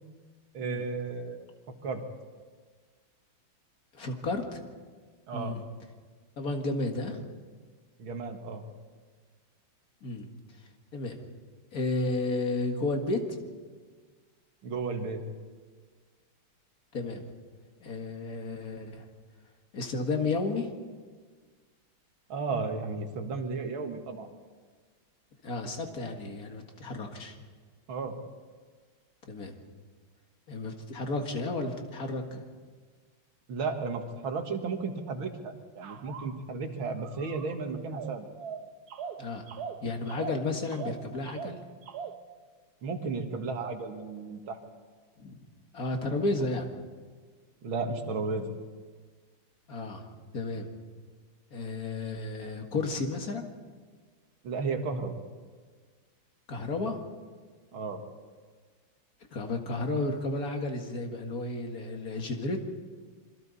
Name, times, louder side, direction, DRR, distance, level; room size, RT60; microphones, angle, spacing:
voice 1, 0.5-1.4 1.7-2.0 5.3-5.6 8.0-8.7 14.6-15.2 22.3-24.3 27.9-28.2 33.5-38.3 42.8-44.6 47.6-48.5 54.4-55.2 57.7-58.0, right 4 dB, 85° right, 5 dB, 2.5 m, -34 dB
voice 2, 3.9-4.6 5.3-5.6 6.4-7.3 10.0-10.3 10.9-11.2 11.7-13.5 16.9-17.2 17.8-19.1 19.7-20.7 25.4-27.4 29.3-29.6 30.5-32.5 39.2-39.4 39.8-41.6 45.2-45.5 45.7-46.7 49.7-50.1 50.3-50.7 51.5-53.5 56.5-57.0 59.3-62.6, left 2 dB, 45° left, 4 dB, 2.2 m, -32 dB
sound 1, 35.8-36.4 37.0-37.6 37.9-42.2, right 6 dB, 60° right, 1.3 m, -41 dB
27.5 x 22.5 x 4.1 m, 1.5 s
omnidirectional pair, 2.2 m